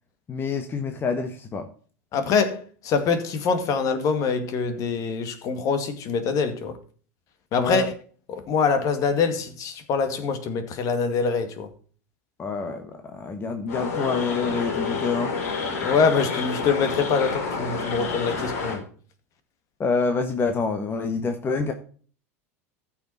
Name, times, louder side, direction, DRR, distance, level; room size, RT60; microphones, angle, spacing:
voice 1, 0.3-1.7 7.6-7.8 12.4-15.4 18.3-18.5 19.8-21.7, left 4 dB, 30° left, 1.5 m, -27 dB
voice 2, 2.1-6.8 7.5-7.9 8.3-11.7 15.8-18.8, left 5 dB, 45° left, 2.1 m, -24 dB
sound 1, 13.7-18.8, left 4 dB, 70° left, 3.5 m, -29 dB
14.0 x 6.1 x 4.2 m
hypercardioid pair, 85°, 8 cm